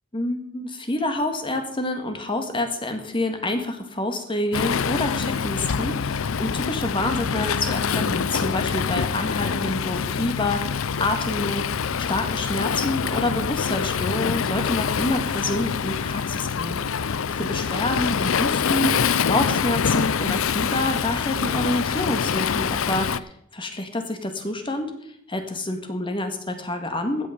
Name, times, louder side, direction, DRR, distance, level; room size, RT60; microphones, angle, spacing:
voice 1, 0.1-16.8 17.4-24.9 25.3-27.3, left 2 dB, 25° left, 6 dB, 1.8 m, -27 dB
Waves surf, 4.5-23.2, left 6 dB, 85° left, 0.6 m, -25 dB
14.5 x 8.7 x 5.1 m, 0.73 s
head